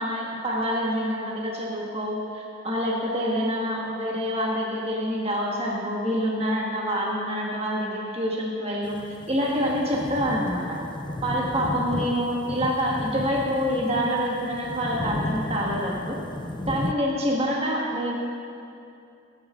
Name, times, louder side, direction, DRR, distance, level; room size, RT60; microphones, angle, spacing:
voice 1, 0.0-9.0 9.3-10.8 11.2-16.2 16.6-18.2, equal, 30° right, -3 dB, 1.6 m, -26 dB
sound 1, 8.8-16.9, left 1 dB, 25° left, 0.5 m, -34 dB
21.0 x 10.5 x 3.8 m, 2.6 s
head